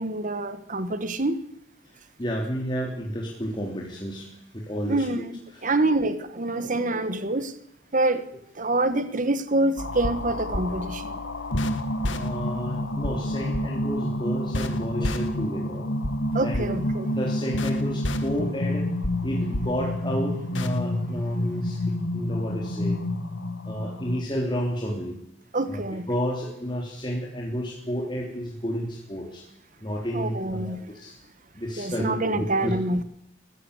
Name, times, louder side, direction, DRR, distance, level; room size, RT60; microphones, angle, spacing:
voice 1, 0.0-1.4 4.8-5.2 5.6-7.5 7.9-8.3 8.6-11.1 16.3-17.1 25.5-26.1 30.1-30.9 31.8-33.0, right 2 dB, 40° right, 11 dB, 1.5 m, -26 dB
voice 2, 2.2-4.3 4.5-5.3 5.5-5.7 12.1-15.9 16.4-16.7 17.1-18.9 19.2-23.0 23.7-25.2 25.7-29.4 29.8-31.2 31.5-32.7, equal, 25° left, -1 dB, 3.3 m, -31 dB
sound 1, 9.8-24.2, left 1 dB, 75° left, 2.0 m, -28 dB
23.0 x 15.5 x 8.3 m, 0.77 s
head